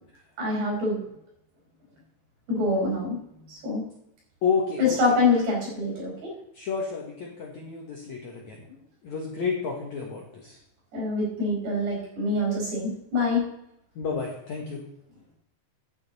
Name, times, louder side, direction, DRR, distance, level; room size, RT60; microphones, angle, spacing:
voice 1, 0.4-1.0 2.5-3.2 3.5-3.8 4.8-6.3 10.9-13.4, left 2 dB, 65° right, -2 dB, 6.9 m, -25 dB
voice 2, 4.4-5.2 6.5-8.7 9.0-10.6 14.0-14.8, left 5 dB, 65° left, -1 dB, 1.9 m, -30 dB
11.0 x 8.9 x 4.1 m, 0.78 s
omnidirectional pair, 5.1 m